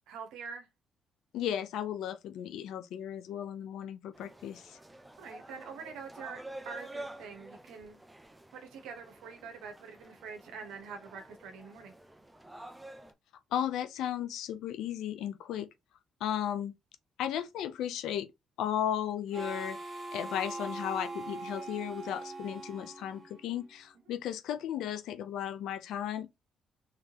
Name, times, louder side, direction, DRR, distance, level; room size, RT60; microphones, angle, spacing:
voice 1, 0.1-0.7 5.2-8.0 8.5-11.9, right 5 dB, 90° right, 1.0 m, -45 dB
voice 2, 1.3-4.8 13.5-15.7 16.2-16.7 17.2-18.3 18.6-19.8 20.1-26.4, left 10 dB, 85° left, 0.5 m, -35 dB
sound 1, 4.1-13.1, right 1 dB, 10° right, 0.7 m, -49 dB
Harmonica, 19.3-23.8, right 2 dB, 30° right, 1.1 m, -41 dB
3.6 x 3.2 x 2.8 m
cardioid pair, 90°, 0 cm